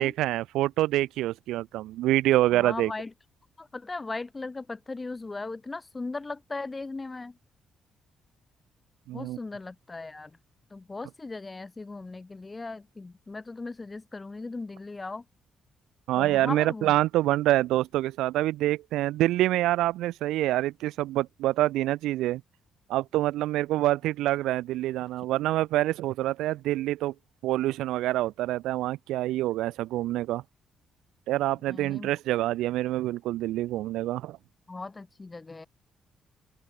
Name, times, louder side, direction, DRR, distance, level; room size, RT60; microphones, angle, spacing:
voice 1, 0.0-2.9 9.1-9.4 16.1-22.4 22.9-27.1 27.4-30.4 31.3-34.4, right 15 dB, 90° right, 0.6 m, -26 dB
voice 2, 2.5-3.1 3.6-7.4 9.1-10.3 10.7-15.2 16.2-17.0 31.7-32.1 34.7-35.7, left 3 dB, 25° left, 5.1 m, -38 dB
open air
cardioid pair, 90°, 0 cm